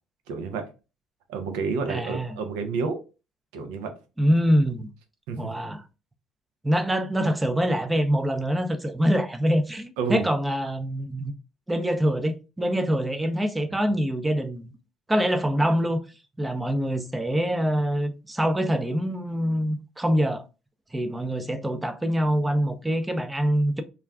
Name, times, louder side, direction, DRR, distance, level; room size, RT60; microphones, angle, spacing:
voice 1, 0.3-0.7 1.3-3.0 3.5-3.9 5.3-5.6 10.0-10.2, right 4 dB, 85° right, 0.6 m, -29 dB
voice 2, 1.9-2.3 4.2-4.9 5.4-5.8 6.6-11.3 11.7-14.7 15.1-16.0 16.4-20.4 20.9-23.8, equal, 10° right, 0.5 m, -25 dB
2.4 x 2.1 x 3.4 m
supercardioid pair, 75°, 0 cm